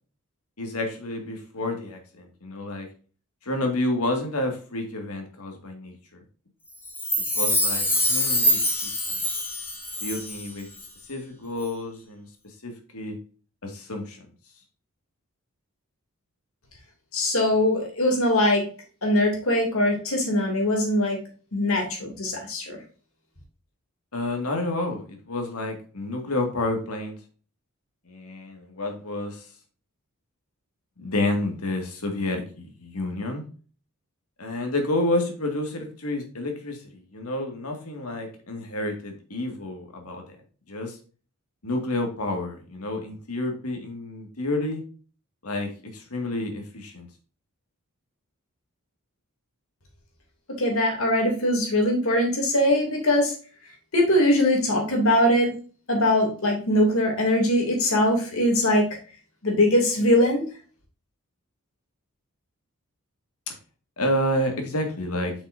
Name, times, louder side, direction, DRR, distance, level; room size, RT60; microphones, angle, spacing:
voice 1, 0.6-2.9 3.4-6.2 7.3-9.2 10.0-10.7 11.1-13.2 13.6-14.3 24.1-27.2 28.1-29.5 31.0-33.4 34.4-40.2 40.7-41.0 41.6-44.8 45.4-47.1 63.5-63.6 64.0-65.3, left 1 dB, 80° left, 3 dB, 2.2 m, -30 dB
Chime, 6.9-10.5 10.8-10.9, equal, 10° left, 1.6 m, -25 dB
voice 2, 17.1-18.6 19.0-21.2 21.5-22.8 50.6-53.3 53.9-55.5 55.9-58.9 59.4-60.4, left 1 dB, 65° left, 1 dB, 3.0 m, -21 dB
8.0 x 6.2 x 2.7 m, 0.39 s
head